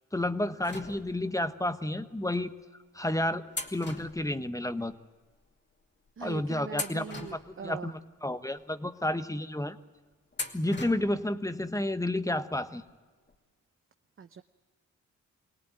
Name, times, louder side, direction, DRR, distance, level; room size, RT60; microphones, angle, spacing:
voice 1, 0.1-2.5 2.9-3.4 3.7-4.9 6.2-9.8 10.5-12.8, left 1 dB, 10° left, 10 dB, 1.3 m, -31 dB
sound 1, 0.6-1.5 2.3-2.4 3.5-4.9 5.2-5.3 6.1-6.3 6.7-8.0 8.5-8.6 10.3-11.3 11.6-11.7 12.9-13.0 13.3-13.4, left 2 dB, 35° left, 2.6 m, -41 dB
voice 2, 6.2-7.9 14.2-14.4, right 6 dB, 40° right, 8 dB, 0.8 m, -41 dB
24.0 x 18.0 x 9.3 m, 1.4 s
cardioid pair, 60°, 32 cm